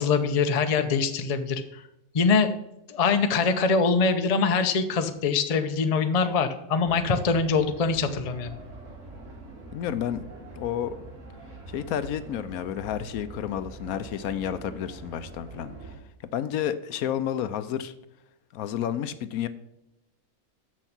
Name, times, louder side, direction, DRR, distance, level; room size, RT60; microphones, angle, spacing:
voice 1, 0.0-1.8 2.1-2.5 2.9-8.5, left 5 dB, 45° left, 8 dB, 0.4 m, -23 dB
sound 1, 6.8-15.9, right 3 dB, 80° right, 3.0 m, -44 dB
voice 2, 9.7-10.2 10.5-10.9 11.7-15.9 16.3-17.9 18.5-19.5, left 10 dB, 75° left, 12 dB, 1.0 m, -30 dB
6.7 x 6.3 x 5.8 m, 0.88 s
omnidirectional pair, 1.6 m